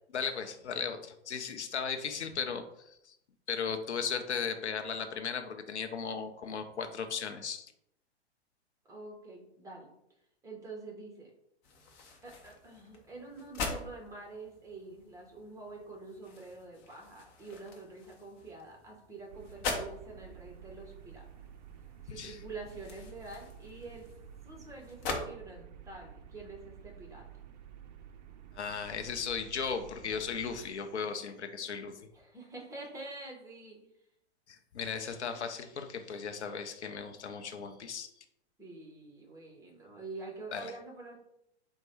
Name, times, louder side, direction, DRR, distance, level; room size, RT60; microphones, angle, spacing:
voice 1, 0.1-3.2 3.5-7.7 22.2-22.4 28.6-31.9 34.5-38.1 40.5-40.7, left 6 dB, 80° left, 7 dB, 0.6 m, -36 dB
voice 2, 8.9-9.9 10.4-11.3 12.2-21.3 22.0-24.1 24.4-27.3 32.1-33.8 38.6-41.2, right 3 dB, 10° right, 0 dB, 0.9 m, -46 dB
sound 1, 11.6-25.2, left 3 dB, 30° left, 0.9 m, -43 dB
sound 2, 19.3-30.7, right 8 dB, 40° right, 0.4 m, -51 dB
4.4 x 2.2 x 4.3 m, 0.77 s
figure-of-eight pair, 110°, 34 cm